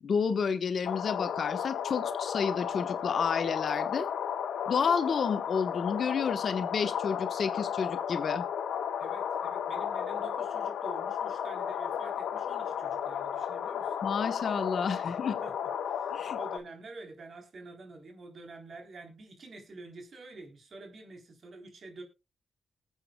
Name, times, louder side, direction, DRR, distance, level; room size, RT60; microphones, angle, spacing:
voice 1, 0.0-4.1 4.7-8.4 14.0-15.4 16.1-16.4, left 6 dB, 65° left, 10 dB, 1.2 m, -30 dB
sound 1, 0.8-16.6, left 8 dB, 80° left, 0.9 m, -33 dB
voice 2, 9.0-14.0 15.1-15.5 15.9-22.0, right 2 dB, 55° right, 4 dB, 3.8 m, -48 dB
20.0 x 8.4 x 2.3 m, 0.27 s
supercardioid pair, 50°, 0 cm